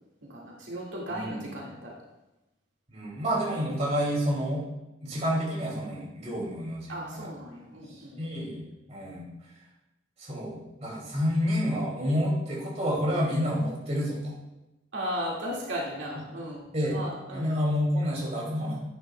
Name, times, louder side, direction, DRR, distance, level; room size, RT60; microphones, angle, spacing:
voice 1, 0.2-2.0 6.3-6.5 6.9-8.2 14.9-17.6, equal, 75° right, -4 dB, 2.1 m, -36 dB
voice 2, 1.1-1.5 2.9-4.6 5.0-7.3 8.2-9.3 10.2-14.3 16.7-17.0 17.3-18.8, equal, 35° right, -3 dB, 2.6 m, -29 dB
10.5 x 10.0 x 2.3 m, 0.98 s
head